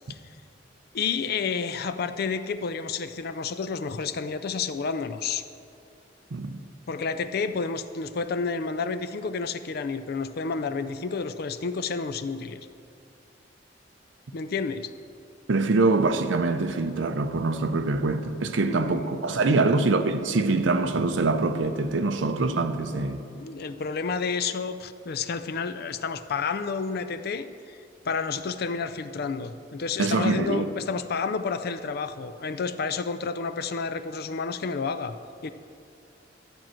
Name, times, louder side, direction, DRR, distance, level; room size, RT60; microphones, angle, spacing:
voice 1, 0.9-5.4 6.9-12.7 14.3-14.9 18.6-19.6 23.4-27.8 28.0-35.1 35.4-35.5, left 5 dB, 55° left, 0.4 m, -30 dB
voice 2, 6.3-6.6 15.5-23.2 30.0-30.6, right 3 dB, 80° right, 0.6 m, -24 dB
12.5 x 7.5 x 4.5 m
head